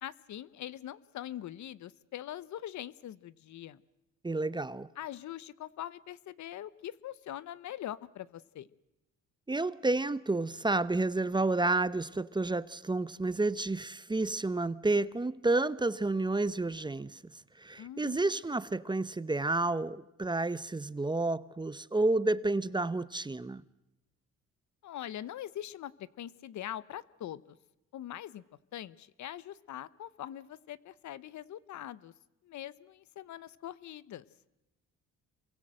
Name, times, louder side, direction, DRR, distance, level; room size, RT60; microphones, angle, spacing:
voice 1, 0.0-3.8 5.0-8.7 17.8-18.2 24.8-27.6 27.9-28.4 28.7-32.1 32.4-34.2, left 12 dB, 70° left, 1.0 m, -43 dB
voice 2, 4.2-4.9 9.5-17.2 17.6-23.6, right 2 dB, 15° right, 0.8 m, -30 dB
27.5 x 23.5 x 7.7 m
cardioid pair, 90°, 30 cm